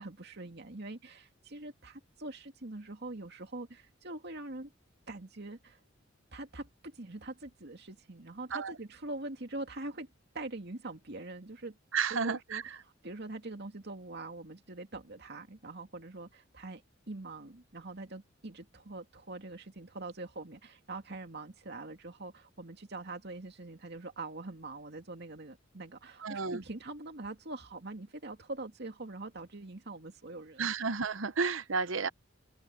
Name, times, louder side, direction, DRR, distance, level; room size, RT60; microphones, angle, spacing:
voice 1, 0.0-4.7 5.1-5.8 6.3-10.1 10.3-11.8 12.1-16.8 17.1-30.7, right 2 dB, 55° right, 2.4 m, -43 dB
voice 2, 11.9-12.8 26.2-26.6 30.6-32.1, right 5 dB, 75° right, 0.9 m, -32 dB
open air
head